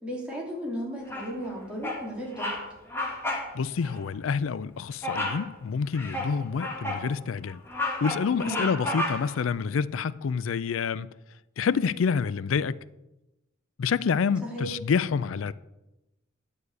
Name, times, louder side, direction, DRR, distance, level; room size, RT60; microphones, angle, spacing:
voice 1, 0.0-2.5 8.3-8.7 14.4-14.7, equal, 5° right, 2.9 m, -35 dB
Bird vocalization bird call bird song, 1.1-1.5 1.8-2.1 2.3-2.6 2.9-3.5 3.8-4.0 5.0-5.4 5.9-7.1 7.5-9.4, left 1 dB, 10° left, 1.8 m, -31 dB
voice 2, 3.5-7.6 8.0-11.1 11.6-12.8 13.8-15.5, left 6 dB, 90° left, 0.4 m, -27 dB
11.0 x 4.9 x 8.1 m
head